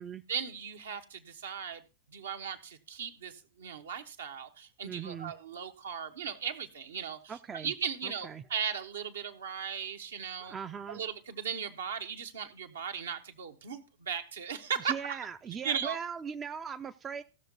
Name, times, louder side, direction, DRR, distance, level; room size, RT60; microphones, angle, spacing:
voice 1, 0.3-1.8 2.1-10.5 10.9-15.2 15.6-16.0, right 7 dB, 65° right, 5 dB, 1.2 m, -37 dB
voice 2, 4.8-5.3 7.3-7.7 8.0-8.4 10.4-11.0 14.8-17.2, right 7 dB, 20° right, 9 dB, 0.5 m, -40 dB
16.5 x 6.6 x 4.0 m, 0.31 s
figure-of-eight pair, 90°, 0 cm